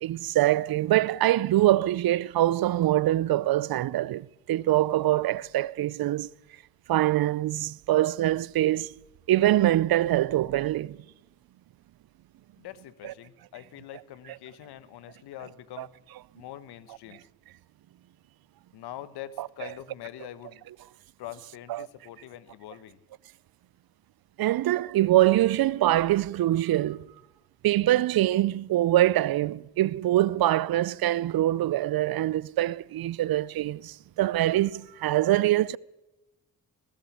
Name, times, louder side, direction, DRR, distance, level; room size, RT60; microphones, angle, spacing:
voice 1, 0.0-6.3 6.9-8.9 9.3-11.0 13.0-13.1 15.8-15.9 19.4-19.5 21.7-21.9 24.4-27.1 27.6-35.8, right 14 dB, 65° right, 0.6 m, -24 dB
voice 2, 12.6-15.9 16.3-17.2 18.7-20.6 21.2-23.0, left 12 dB, 80° left, 1.2 m, -44 dB
19.5 x 17.5 x 8.5 m
hypercardioid pair, 40°, 39 cm